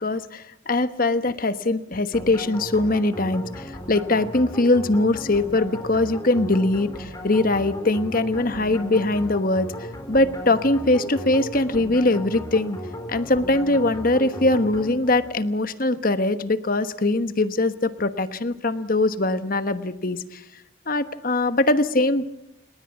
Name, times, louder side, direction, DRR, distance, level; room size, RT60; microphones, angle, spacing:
voice 1, 0.0-9.7 10.1-12.8 13.1-20.4 20.9-22.3, left 2 dB, 45° left, 11 dB, 1.2 m, -22 dB
sound 1, 2.1-15.4, equal, 15° left, 3.9 m, -36 dB
29.0 x 19.0 x 7.2 m, 0.83 s
head